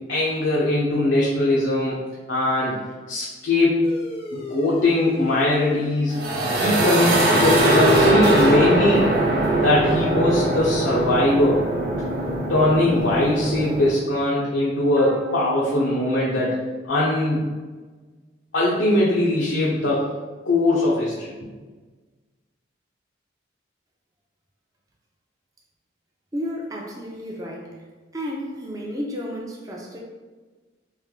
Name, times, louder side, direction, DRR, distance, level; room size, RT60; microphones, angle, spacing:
voice 1, 0.1-2.0 2.3-2.7 3.1-3.8 4.3-6.2 6.5-9.2 9.5-11.6 12.5-16.5 16.9-17.5 18.5-20.1 20.4-21.3, left 1 dB, 75° left, -5 dB, 0.7 m, -21 dB
sound 1, 3.8-8.7, left 1 dB, 30° left, 0.5 m, -39 dB
sound 2, 6.1-13.9, right 1 dB, 50° right, 0.8 m, -21 dB
sound 3, 11.7-13.3 15.0-16.9, left 2 dB, 90° right, 0.7 m, -35 dB
voice 2, 26.3-27.8 28.1-30.0, equal, 20° right, -2 dB, 0.4 m, -32 dB
3.3 x 3.0 x 3.6 m, 1.3 s
head